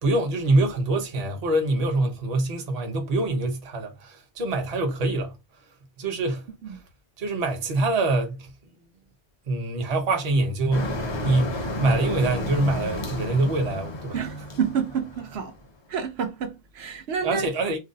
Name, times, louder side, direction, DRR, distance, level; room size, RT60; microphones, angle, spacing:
voice 1, 0.0-5.3 6.0-6.8 7.2-8.5 9.5-14.2 17.2-17.8, right 2 dB, 40° right, 0.7 m, -25 dB
Motor vehicle (road), 10.7-15.7, left 1 dB, 40° left, 0.4 m, -32 dB
voice 2, 14.1-15.5 15.9-17.5, right 7 dB, 75° right, 0.9 m, -29 dB
2.6 x 2.0 x 3.7 m
omnidirectional pair, 1.1 m